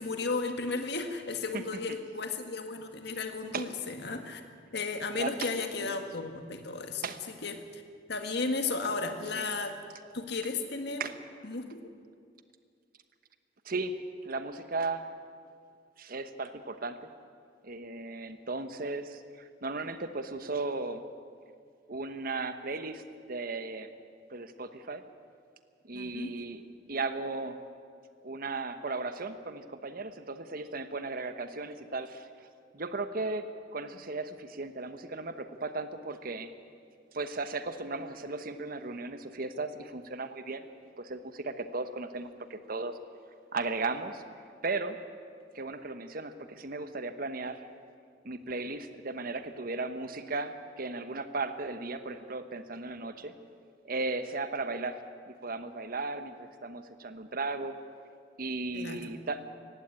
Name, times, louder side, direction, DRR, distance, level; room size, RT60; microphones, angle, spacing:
voice 1, 0.0-4.4 4.7-7.1 7.4-7.8 8.1-9.8 10.1-11.0 11.4-11.9 25.9-26.3 58.7-59.1, left 3 dB, 65° left, 6 dB, 1.8 m, -34 dB
voice 2, 5.2-5.5 5.8-6.0 7.0-7.2 9.3-9.5 11.0-11.1 13.6-13.9 14.2-15.1 16.0-17.1 17.6-21.0 21.9-23.0 23.3-23.9 24.3-25.0 25.8-26.6 26.9-27.7 28.2-32.3 32.7-36.5 37.1-40.6 41.0-43.0 43.5-44.2 44.6-45.0 45.5-47.7 48.2-53.3 53.8-55.0 55.3-57.8 58.4-59.4, right 3 dB, 55° right, 10 dB, 1.1 m, -36 dB
17.5 x 16.0 x 9.8 m, 2.2 s
head